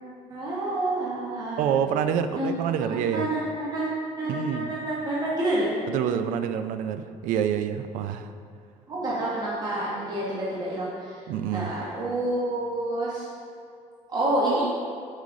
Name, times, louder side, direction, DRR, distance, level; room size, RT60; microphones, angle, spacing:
voice 1, 0.3-1.6 2.4-2.5 3.1-3.4 3.7-5.7 8.9-11.2 11.5-13.3 14.1-14.6, right 2 dB, 30° right, -7 dB, 1.1 m, -28 dB
voice 2, 1.6-3.3 4.3-4.7 5.9-8.3 11.3-11.7, right 8 dB, 90° right, 9 dB, 0.4 m, -27 dB
5.5 x 4.8 x 3.7 m, 2.4 s
cardioid pair, 140°, 13 cm